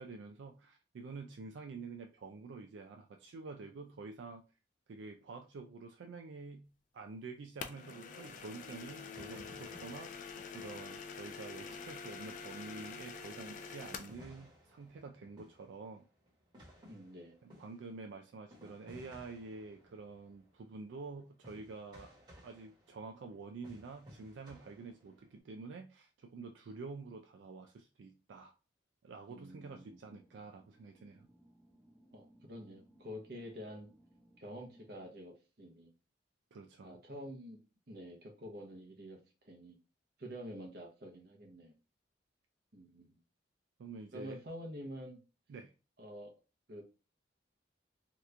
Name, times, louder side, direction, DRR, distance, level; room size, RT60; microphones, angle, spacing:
voice 1, 0.0-4.4 4.9-10.3 10.5-16.1 17.4-22.1 22.4-28.5 29.0-31.3 36.5-37.0 43.8-44.4 45.5-45.7, right 4 dB, 85° right, 4 dB, 0.4 m, -48 dB
sound 1, 7.6-14.2, left 5 dB, 45° left, 0.3 m, -46 dB
sound 2, 9.1-12.5 12.8-25.4, equal, 25° right, 1.1 m, -59 dB
voice 2, 16.9-17.3 29.3-30.0 32.1-33.9 34.4-35.9 36.8-37.6 37.9-39.8 40.2-41.7 42.7-43.2 44.1-45.2 46.0-46.3 46.7-46.8, equal, 55° right, 3 dB, 0.8 m, -48 dB
sound 3, 29.5-35.1, equal, 5° right, 0.7 m, -65 dB
2.9 x 2.4 x 3.2 m, 0.32 s
head